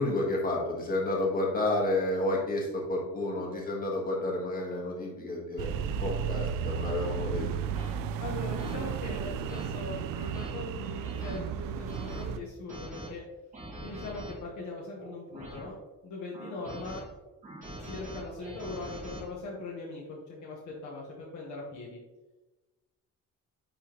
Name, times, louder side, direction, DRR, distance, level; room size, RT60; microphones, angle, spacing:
voice 1, 0.0-5.7 6.0-7.4, left 2 dB, 25° left, -2 dB, 1.6 m, -30 dB
sound 1, 5.2-5.3 6.0-6.2 6.9-7.0 7.7-7.9 8.6-8.8 9.3-9.6 10.1-10.5 11.0-11.4 11.9-12.2 12.7-13.1 13.5-14.3 15.0-15.7 16.3-17.0 17.4-19.2, right 1 dB, 25° right, 1.9 m, -43 dB
sound 2, 5.6-12.4, right 7 dB, 90° right, 0.5 m, -34 dB
voice 2, 8.2-13.2 13.8-15.8 16.0-17.0 17.8-22.0, left 3 dB, 60° left, -3 dB, 1.2 m, -40 dB
10.0 x 3.5 x 3.0 m, 1.1 s
cardioid pair, 165°, 32 cm